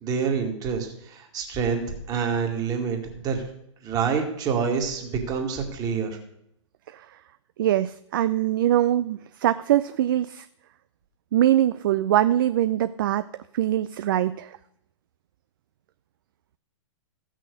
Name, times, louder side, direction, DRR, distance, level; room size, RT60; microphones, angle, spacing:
voice 1, 0.0-3.4 3.8-6.2, right 6 dB, 25° right, 3 dB, 2.2 m, -27 dB
voice 2, 7.6-10.5 11.3-13.3 13.5-14.6, right 12 dB, 45° right, 13 dB, 0.4 m, -23 dB
15.0 x 6.4 x 6.5 m, 0.78 s
figure-of-eight pair, 115°, 16 cm